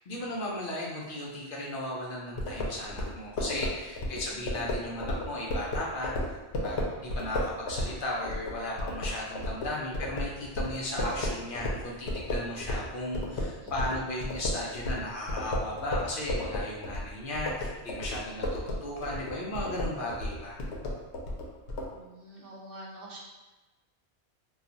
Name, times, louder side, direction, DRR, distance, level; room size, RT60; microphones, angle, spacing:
voice 1, 0.1-6.4 6.6-20.6, left 1 dB, 60° left, -4 dB, 0.7 m, -36 dB
sound 1, 2.4-12.9 13.1-21.9, left 1 dB, 85° left, 0.9 m, -33 dB
voice 2, 21.9-23.2, right 1 dB, 60° right, -3 dB, 0.8 m, -46 dB
2.3 x 2.3 x 3.8 m, 1.1 s
omnidirectional pair, 1.1 m